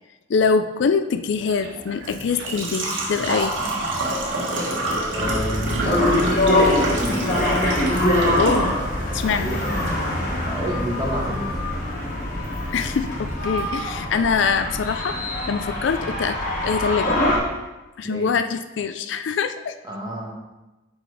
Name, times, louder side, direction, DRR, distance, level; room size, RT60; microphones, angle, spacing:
voice 1, 0.3-3.6 8.4-8.8 9.1-9.5 12.7-15.2 15.5-16.4 16.6-17.2 18.0-19.7, left 5 dB, 70° left, 10 dB, 0.4 m, -23 dB
sound 1, 1.1-7.6 7.9-8.6 9.0-11.8 12.4-13.6, left 2 dB, 65° right, 2.0 m, -39 dB
Engine / Trickle dribble / Fill (with liquid), 1.3-13.3, right 1 dB, 85° right, 1.6 m, -30 dB
sound 2, 5.1-17.4, left 1 dB, 45° left, 1.5 m, -23 dB
voice 2, 5.1-6.0 6.7-7.2 9.3-9.9 10.4-11.5 18.0-18.3 19.8-20.3, equal, 20° right, -2 dB, 1.3 m, -30 dB
7.7 x 4.0 x 4.8 m, 1.1 s
head